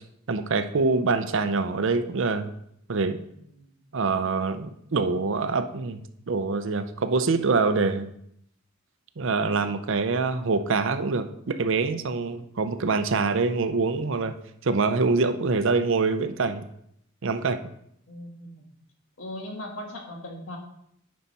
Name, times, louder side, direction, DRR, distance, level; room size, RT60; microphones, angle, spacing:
voice 1, 0.3-2.5 2.9-3.2 3.9-6.0 6.3-8.1 9.2-14.3 14.6-16.6 17.2-17.6, right 4 dB, 65° right, 9 dB, 0.6 m, -25 dB
voice 2, 18.1-18.6 19.2-20.6, left 1 dB, 90° left, 1 dB, 1.7 m, -38 dB
9.6 x 5.7 x 4.2 m, 0.73 s
head